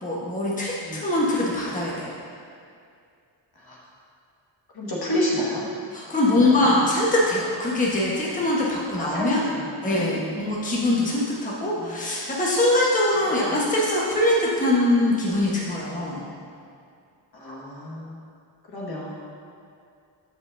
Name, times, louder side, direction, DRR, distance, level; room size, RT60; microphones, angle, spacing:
voice 1, 0.0-2.2 5.9-9.4 9.8-16.3, left 1 dB, 15° left, -6 dB, 1.3 m, -23 dB
voice 2, 4.8-5.6 6.4-6.7 9.0-10.3 11.8-11.9 17.3-18.2 18.7-19.1, left 1 dB, 55° left, -5 dB, 1.8 m, -30 dB
14.0 x 5.4 x 2.7 m, 2.3 s
cardioid pair, 100°, 46 cm